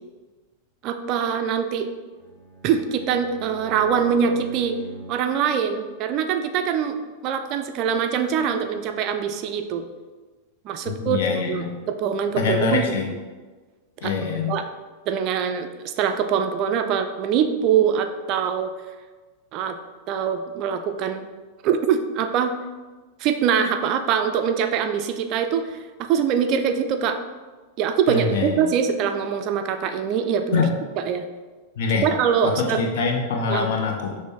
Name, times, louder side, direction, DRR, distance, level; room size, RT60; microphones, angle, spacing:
voice 1, 0.8-1.9 2.6-4.8 5.1-7.0 7.2-9.8 10.6-12.9 14.0-14.7 15.1-18.7 19.5-19.8 20.1-21.3 21.6-22.5 23.2-27.2 27.8-30.6 31.1-31.3 32.0-32.8 33.5-33.7, right 7 dB, 40° right, 7 dB, 0.3 m, -23 dB
Bowed string instrument, 2.1-5.3, right 1 dB, ahead, 1.0 m, -40 dB
voice 2, 10.9-11.8 12.4-13.1 14.0-14.6 28.1-28.6 30.5-30.7 31.8-32.0 32.4-34.1, left 5 dB, 55° left, 2 dB, 0.6 m, -24 dB
6.1 x 2.0 x 3.2 m, 1.3 s
figure-of-eight pair, 90°, 0 cm